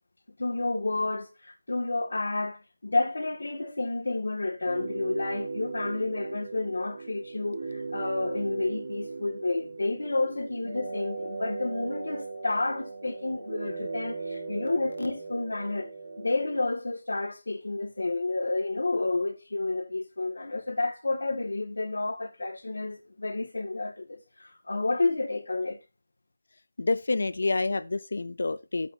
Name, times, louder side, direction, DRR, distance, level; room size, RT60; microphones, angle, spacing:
voice 1, 0.4-15.9 16.2-25.8, left 2 dB, 85° left, 2.1 m, -30 dB
sound 1, 4.6-16.6, right 3 dB, 40° right, 5.4 m, -38 dB
voice 2, 26.8-28.9, left 3 dB, 55° left, 0.7 m, -28 dB
12.0 x 8.2 x 2.8 m
figure-of-eight pair, 180°, 0 cm